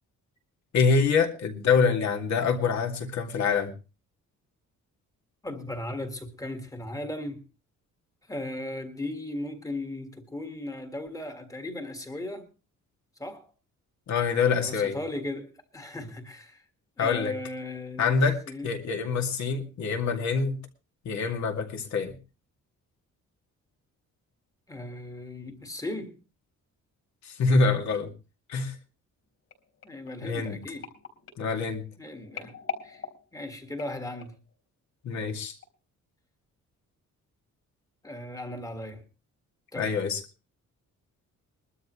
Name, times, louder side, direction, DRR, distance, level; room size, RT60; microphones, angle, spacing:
voice 1, 0.7-3.7 14.1-15.0 17.0-17.4 18.0-20.6 21.0-22.1 27.2-28.1 28.5-28.7 30.2-30.6 31.4-31.8 35.0-35.5 39.8-40.2, left 5 dB, 65° left, 2.4 m, -25 dB
voice 2, 5.4-7.4 8.3-12.5 13.2-13.5 14.5-16.6 17.0-18.2 18.5-18.7 24.7-26.2 29.8-30.9 32.0-32.6 32.8-33.0 33.3-34.4 38.0-39.0 39.7-40.0, left 1 dB, 10° left, 1.7 m, -37 dB
sound 1, 29.5-34.5 35.1-35.3 35.6-35.7, left 7 dB, 45° left, 4.1 m, -42 dB
21.5 x 12.5 x 3.1 m
wide cardioid pair, 175°, 31 cm